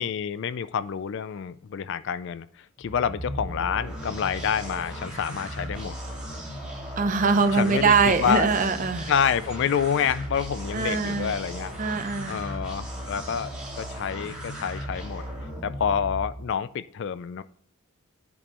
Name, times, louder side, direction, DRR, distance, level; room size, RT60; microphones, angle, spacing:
voice 1, 0.0-6.0 7.5-8.6 9.1-11.7 12.3-15.2 15.6-17.4, left 7 dB, 55° left, 15 dB, 0.3 m, -28 dB
sound 1, 2.8-16.5, equal, 5° right, 1.9 m, -36 dB
voice 2, 7.0-9.1 10.7-11.3 11.8-12.4, right 4 dB, 35° right, 9 dB, 0.6 m, -23 dB
9.8 x 5.3 x 2.9 m, 0.63 s
head